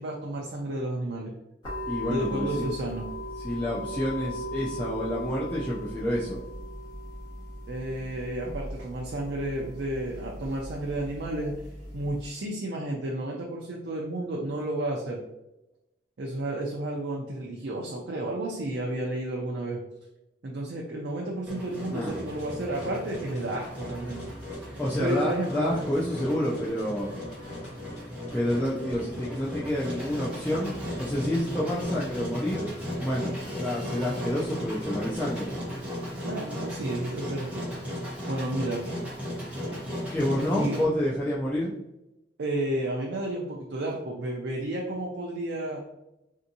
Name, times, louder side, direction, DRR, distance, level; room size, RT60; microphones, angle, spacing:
voice 1, 0.0-1.3 2.1-3.1 7.7-11.5 11.9-15.2 16.2-19.8 20.4-25.7 36.2-37.8 38.3-38.8 40.4-40.8 42.4-45.8, right 1 dB, 60° right, -1 dB, 0.4 m, -32 dB
sound 1, 1.6-12.3, equal, 25° left, 1.4 m, -38 dB
voice 2, 1.9-2.7 3.4-6.4 21.9-22.2 24.8-27.2 28.3-35.5 40.1-41.7, left 1 dB, 10° left, -7 dB, 0.4 m, -29 dB
Engine, 21.5-40.8, equal, 5° right, 0.9 m, -36 dB
sound 2, 22.1-35.8, equal, 40° left, 0.7 m, -47 dB
3.4 x 2.7 x 2.6 m, 0.93 s
head